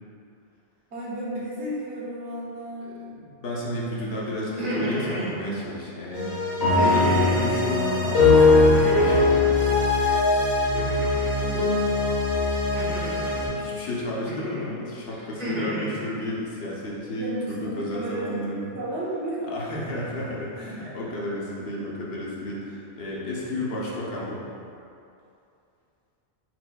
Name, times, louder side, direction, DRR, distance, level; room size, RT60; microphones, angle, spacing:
voice 1, 0.9-2.9 6.6-6.9 11.4-11.9 17.2-19.4 20.8-21.0, right 1 dB, 90° right, -7 dB, 1.2 m, -33 dB
voice 2, 2.8-6.4 6.7-9.6 13.1-18.7 19.5-24.4, left 1 dB, 65° left, -5 dB, 0.9 m, -32 dB
sound 1, 4.4-5.3 6.8-7.4 8.7-9.4 10.7-11.3 12.8-13.4 14.3-14.6 15.1-15.9, equal, 40° right, 1.3 m, -32 dB
sound 2, 6.1-13.5, left 3 dB, 80° left, 1.3 m, -21 dB
Bass guitar, 11.6-15.4, left 5 dB, 35° left, 0.4 m, -32 dB
4.4 x 3.9 x 2.2 m, 2.6 s
omnidirectional pair, 1.1 m